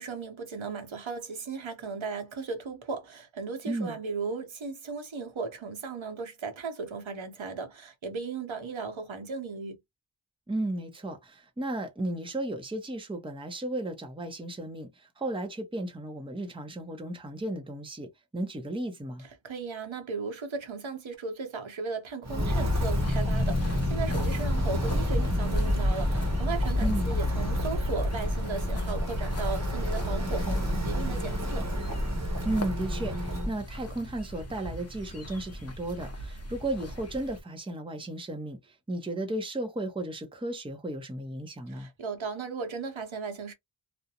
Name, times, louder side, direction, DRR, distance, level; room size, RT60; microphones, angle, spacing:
voice 1, 0.0-9.8 19.2-31.6 41.7-43.5, right 4 dB, 70° right, 0.9 m, -36 dB
voice 2, 3.7-4.0 10.5-14.9 15.2-18.1 18.3-19.2 26.8-27.5 32.4-38.6 38.9-41.9, right 1 dB, 10° right, 0.7 m, -34 dB
Walk footsteps, 22.2-33.5, left 1 dB, 35° right, 1.0 m, -28 dB
sound 1, 22.5-37.4, equal, 30° left, 0.7 m, -40 dB
2.5 x 2.1 x 2.8 m
wide cardioid pair, 90°, 49 cm